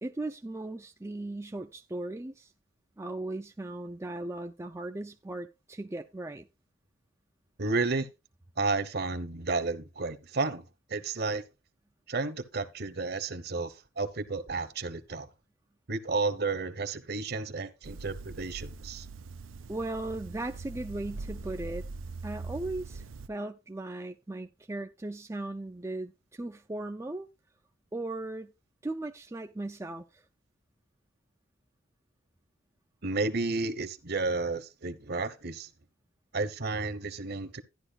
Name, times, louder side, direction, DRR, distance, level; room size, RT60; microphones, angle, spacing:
voice 1, 0.0-2.5 3.0-6.5 19.7-21.9 22.2-27.3 27.9-28.5 28.8-30.2, right 2 dB, 15° right, 0.4 m, -37 dB
voice 2, 7.6-8.1 8.6-10.6 10.9-11.4 12.1-15.3 15.9-19.1 33.0-35.7 36.3-37.6, right 3 dB, 55° right, 1.0 m, -32 dB
sound 1, 17.8-23.3, right 3 dB, 85° right, 0.5 m, -42 dB
12.0 x 10.5 x 2.4 m
head